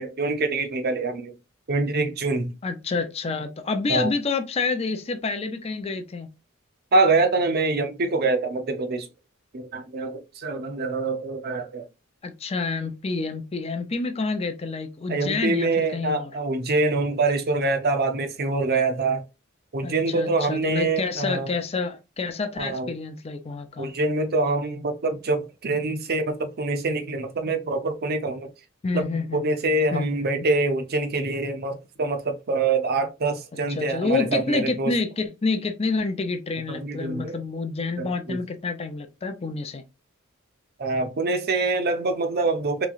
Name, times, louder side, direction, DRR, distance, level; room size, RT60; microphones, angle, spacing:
voice 1, 0.0-1.3 1.7-2.5 3.9-4.1 6.9-9.1 9.5-11.9 15.1-19.2 19.7-21.5 22.6-22.9 23.8-28.5 28.9-29.1 29.3-35.0 36.7-37.4 38.0-38.4 40.8-42.9, right 3 dB, 50° right, 0.6 m, -25 dB
voice 2, 2.6-6.3 12.2-16.3 19.8-23.9 28.8-29.4 29.9-30.5 33.7-39.8, left 4 dB, 30° left, 0.4 m, -28 dB
3.6 x 3.1 x 2.4 m
head